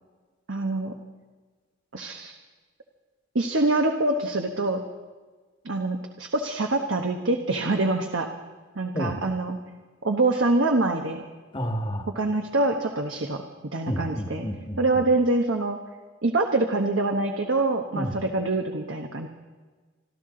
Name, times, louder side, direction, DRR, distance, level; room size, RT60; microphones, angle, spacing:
voice 1, 0.5-0.9 1.9-2.3 3.3-4.8 5.6-8.3 8.7-9.6 10.0-11.2 12.1-13.4 13.7-14.5 14.8-15.8 16.2-19.3, right 2 dB, 65° right, 3 dB, 1.1 m, -25 dB
voice 2, 11.5-12.1 13.9-15.0 17.9-18.1, equal, 25° left, 4 dB, 1.5 m, -30 dB
26.5 x 13.0 x 3.9 m, 1.3 s
head